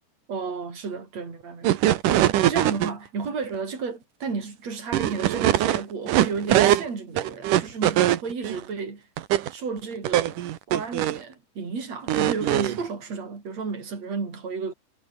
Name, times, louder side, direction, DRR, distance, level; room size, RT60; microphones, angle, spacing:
voice 1, 0.3-1.8 2.1-9.1 9.5-10.4 10.7-14.7, right 5 dB, 50° right, 6.4 m, -32 dB
sound 1, 1.6-2.9 4.9-6.8 7.2-8.6 9.2-9.5 10.0-11.2 12.1-12.8, right 13 dB, 75° right, 2.8 m, -22 dB
omnidirectional pair, 3.8 m